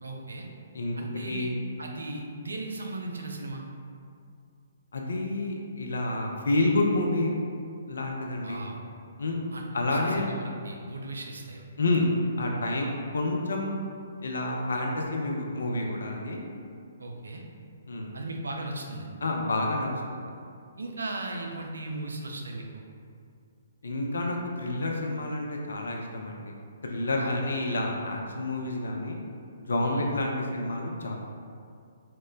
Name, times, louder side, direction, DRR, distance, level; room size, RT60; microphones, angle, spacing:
voice 1, 0.0-0.5 1.0-1.5 1.8-3.6 8.4-8.8 9.5-11.7 17.0-17.4 18.1-19.1 20.8-22.8 27.1-27.4 29.8-30.1, right 2 dB, 70° right, 1 dB, 0.3 m, -37 dB
voice 2, 4.9-7.3 7.9-8.6 9.2-9.4 9.7-10.3 11.8-13.8 14.2-16.4 17.9-18.1 19.2-20.3 23.8-26.5 26.8-29.2 29.6-31.1, left 2 dB, 65° left, 0 dB, 0.3 m, -29 dB
2.1 x 2.0 x 3.7 m, 2.3 s
figure-of-eight pair, 125°, 0 cm